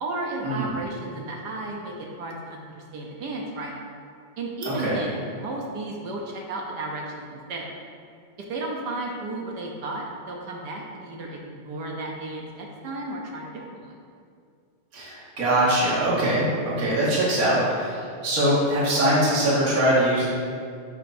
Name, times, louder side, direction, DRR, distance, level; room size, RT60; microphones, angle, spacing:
voice 1, 0.0-3.8 4.4-7.8 8.5-13.9, right 2 dB, 60° right, 0 dB, 1.3 m, -33 dB
voice 2, 4.7-5.0 14.9-20.2, right 1 dB, 45° right, -7 dB, 2.1 m, -22 dB
10.0 x 6.1 x 2.6 m, 2.2 s
omnidirectional pair, 2.3 m